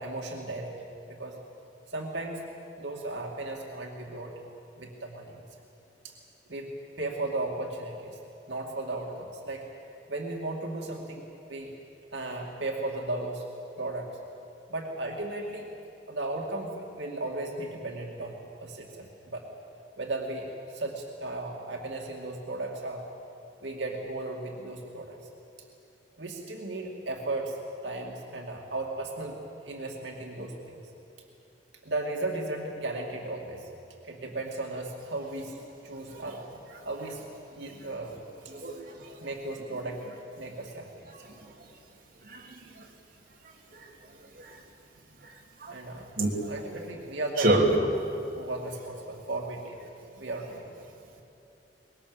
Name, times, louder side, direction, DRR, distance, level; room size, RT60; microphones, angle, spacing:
voice 1, 0.0-1.3 1.9-2.4 2.8-4.3 4.8-5.4 6.0-6.1 6.5-8.2 8.5-9.7 10.1-11.2 11.5-11.7 12.1-13.5 13.8-14.1 14.7-15.7 16.1-19.4 20.0-23.1 23.6-25.2 26.2-27.6 27.8-29.4 29.6-30.8 31.8-33.7 34.0-36.4 36.8-37.2 37.6-38.2 39.1-40.0 40.4-41.0 45.7-46.0 46.5-47.7 48.3-49.8 50.1-50.7, right 2 dB, 85° right, 0 dB, 2.4 m, -35 dB
voice 2, 38.5-39.1 42.3-42.6 44.4-44.5 45.6-45.7 46.2-46.5 47.4-47.7, right 2 dB, 50° right, -2 dB, 3.4 m, -27 dB
24.5 x 21.5 x 7.0 m, 2.8 s
head